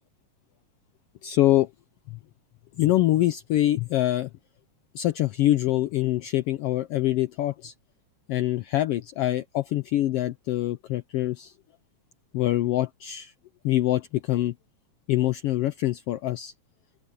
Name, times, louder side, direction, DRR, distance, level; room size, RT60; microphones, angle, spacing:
voice 1, 1.2-1.7 2.1-2.2 2.8-4.3 4.9-7.7 8.3-11.5 12.3-13.3 13.6-14.5 15.1-16.5, left 14 dB, 80° left, 1.3 m, -24 dB
open air
omnidirectional pair, 3.4 m